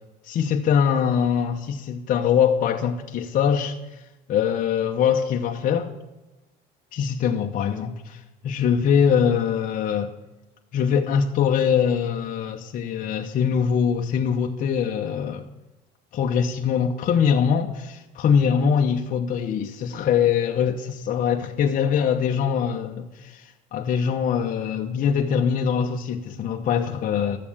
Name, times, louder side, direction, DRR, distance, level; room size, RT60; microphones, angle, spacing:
voice 1, 0.2-3.7 4.3-5.9 6.9-10.1 10.7-15.4 16.1-23.4 23.7-27.4, left 7 dB, 50° left, 0.9 m, -23 dB
12.0 x 7.5 x 7.2 m
cardioid pair, 135°, 18 cm